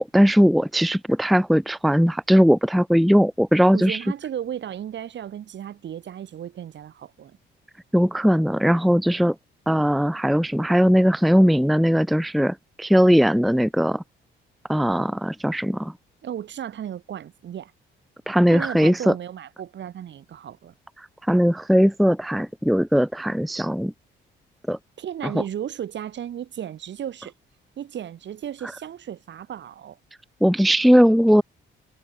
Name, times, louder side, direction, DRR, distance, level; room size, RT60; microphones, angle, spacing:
voice 1, 0.0-4.0 7.9-9.3 9.7-14.0 14.7-15.9 18.3-19.1 21.3-23.9 24.7-24.8 30.4-31.4, equal, ahead, 0.6 m, -19 dB
voice 2, 3.7-7.4 16.2-17.7 18.5-20.7 25.0-27.3 27.8-30.0, right 10 dB, 65° right, 6.5 m, -34 dB
cardioid pair, 90°, 20 cm